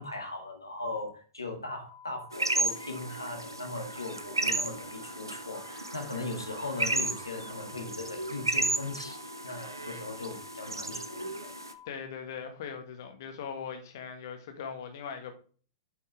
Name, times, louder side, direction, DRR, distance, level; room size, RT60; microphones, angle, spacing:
voice 1, 0.0-11.5, left 2 dB, 85° left, 1.9 m, -39 dB
sound 1, 1.9-11.9, left 10 dB, 40° left, 1.1 m, -51 dB
sound 2, 2.3-11.7, right 2 dB, 85° right, 0.7 m, -34 dB
sound 3, 3.5-8.6 8.9-9.0, right 4 dB, 40° right, 2.5 m, -54 dB
voice 2, 11.8-15.4, left 6 dB, 55° left, 1.6 m, -40 dB
8.5 x 5.3 x 3.4 m
figure-of-eight pair, 100°, 2 cm